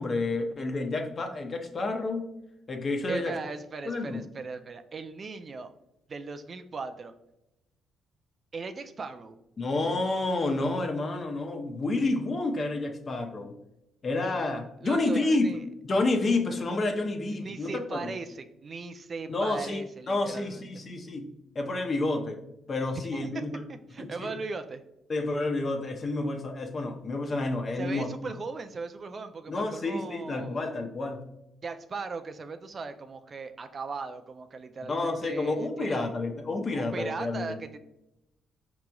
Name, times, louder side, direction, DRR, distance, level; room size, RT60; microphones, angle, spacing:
voice 1, 0.0-2.2 2.7-3.3 3.8-4.2 9.6-13.5 14.0-15.6 15.8-18.1 19.3-21.3 21.5-22.4 22.7-23.6 24.0-24.3 25.1-28.1 29.5-31.2 34.9-37.6, left 2 dB, 40° left, 4 dB, 0.6 m, -29 dB
voice 2, 3.1-5.7 6.1-7.1 8.5-9.4 14.8-15.6 17.4-20.6 23.0-23.4 23.7-24.8 27.8-30.6 31.6-36.0 36.7-37.8, right 4 dB, 40° right, 8 dB, 0.3 m, -38 dB
4.9 x 2.9 x 2.3 m, 0.86 s
cardioid pair, 90°, 0 cm